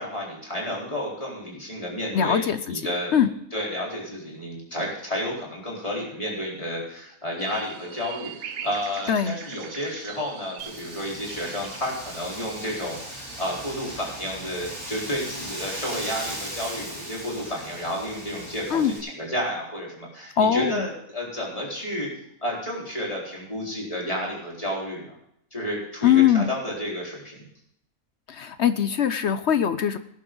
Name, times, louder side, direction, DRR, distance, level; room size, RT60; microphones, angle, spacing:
voice 1, 0.0-22.1 22.4-25.1 25.5-27.5, equal, 25° left, -4 dB, 4.5 m, -31 dB
voice 2, 2.1-2.8 3.1-3.3 9.1-9.4 18.7-18.9 20.4-20.9 26.0-26.5 28.3-30.0, left 9 dB, 60° left, 11 dB, 0.8 m, -21 dB
sound 1, 7.4-13.6, right 8 dB, 75° right, 1.3 m, -42 dB
Wind, 10.6-19.0, equal, 15° right, 3.9 m, -38 dB
19.0 x 10.5 x 3.9 m, 0.73 s
omnidirectional pair, 1.5 m